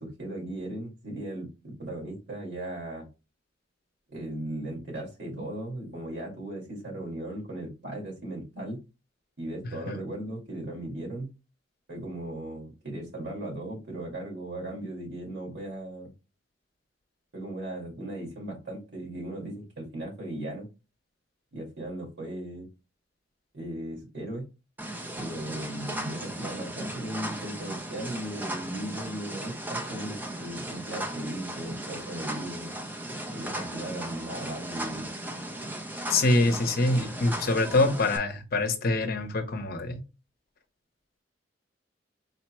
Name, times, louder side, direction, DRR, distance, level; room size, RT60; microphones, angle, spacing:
voice 1, 0.0-3.1 4.1-8.8 9.4-11.3 11.9-16.1 17.3-20.7 21.5-22.7 23.5-24.5 25.2-32.7 33.3-35.1, right 1 dB, 75° right, 2.1 m, -37 dB
sound 1, 24.8-38.2, right 1 dB, 10° right, 0.5 m, -36 dB
voice 2, 36.1-40.0, left 2 dB, 55° left, 0.7 m, -25 dB
4.0 x 2.1 x 4.3 m
head